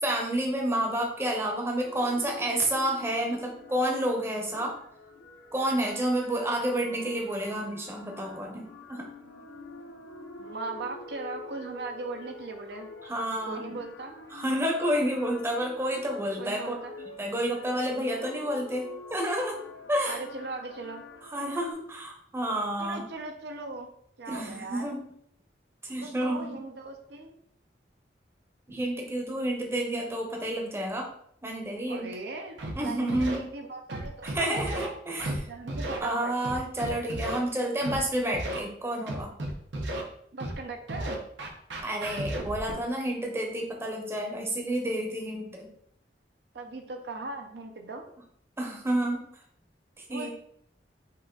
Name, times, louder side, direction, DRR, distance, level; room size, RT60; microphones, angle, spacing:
voice 1, 0.0-4.8 5.5-9.1 13.0-13.7 14.3-16.7 17.2-19.6 19.9-20.2 21.2-23.1 24.3-25.0 25.8-26.5 28.7-31.1 31.4-32.1 32.8-33.4 34.2-35.5 36.0-39.3 41.8-45.7 48.6-49.2 50.0-50.3, right 1 dB, 15° right, 1 dB, 0.7 m, -30 dB
sound 1, 1.8-21.7, left 2 dB, 85° left, 0.9 m, -47 dB
voice 2, 10.4-12.9 13.4-14.1 16.4-17.1 20.0-21.0 22.8-23.9 24.2-24.9 26.0-27.3 31.9-34.7 35.5-36.3 40.3-41.3 46.5-48.1 50.1-50.3, right 3 dB, 65° right, 4 dB, 0.5 m, -39 dB
Scratching (performance technique), 32.6-32.7 33.1-33.4 33.9-34.9 35.2-35.4 35.7-36.0 36.4-37.4 37.8-38.0 38.3-38.6 39.1-40.0 40.4-40.6 40.9-42.7, right 1 dB, 90° right, 0.9 m, -33 dB
5.5 x 2.4 x 3.8 m, 0.69 s
head